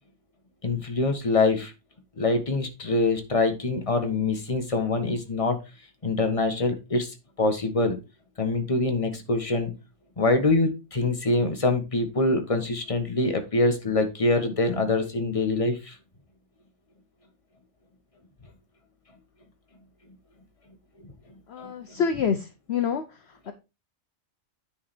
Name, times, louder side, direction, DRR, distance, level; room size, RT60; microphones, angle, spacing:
voice 1, 0.6-1.7 2.2-5.6 6.0-8.0 8.4-9.8 10.2-15.9 21.0-21.1 21.6-21.7, left 3 dB, 25° left, 5 dB, 1.4 m, -24 dB
voice 2, 21.5-22.4 22.7-23.0 23.5-23.6, left 7 dB, 55° left, 9 dB, 0.9 m, -26 dB
9.7 x 4.8 x 4.3 m, 0.27 s
omnidirectional pair, 1.4 m